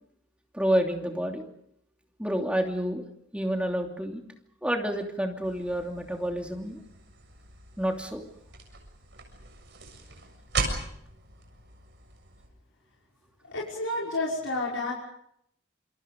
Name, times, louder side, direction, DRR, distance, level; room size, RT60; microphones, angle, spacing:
voice 1, 0.5-1.4 2.2-3.0 3.3-4.2 4.6-6.8 7.8-8.2, equal, 5° right, 2 dB, 2.8 m, -29 dB
sound 1, 5.4-12.5, right 3 dB, 60° right, 7.0 m, -38 dB
voice 2, 13.4-14.9, left 2 dB, 90° left, -4 dB, 6.0 m, -30 dB
28.0 x 27.0 x 5.3 m, 0.73 s
head